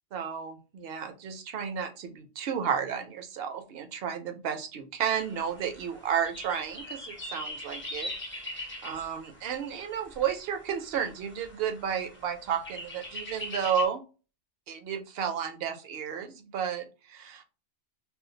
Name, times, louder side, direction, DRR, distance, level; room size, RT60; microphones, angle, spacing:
voice 1, 0.1-8.1 8.4-14.0 14.7-17.4, right 8 dB, 65° right, 6 dB, 0.7 m, -32 dB
sound 1, 5.2-13.9, left 1 dB, 15° left, 0.4 m, -42 dB
2.5 x 2.2 x 3.7 m, 0.34 s
omnidirectional pair, 1.2 m